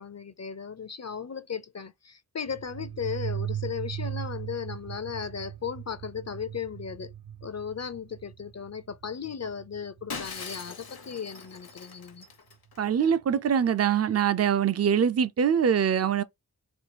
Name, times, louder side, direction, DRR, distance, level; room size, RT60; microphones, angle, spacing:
voice 1, 0.0-7.1 7.4-12.3, left 7 dB, 45° left, 0.5 m, -36 dB
sound 1, 2.5-10.9, right 10 dB, 85° right, 0.6 m, -38 dB
Shatter, 10.1-12.8, left 5 dB, 75° left, 0.9 m, -41 dB
voice 2, 12.8-16.2, right 8 dB, 45° right, 0.4 m, -23 dB
4.5 x 2.3 x 2.7 m
wide cardioid pair, 70°, 37 cm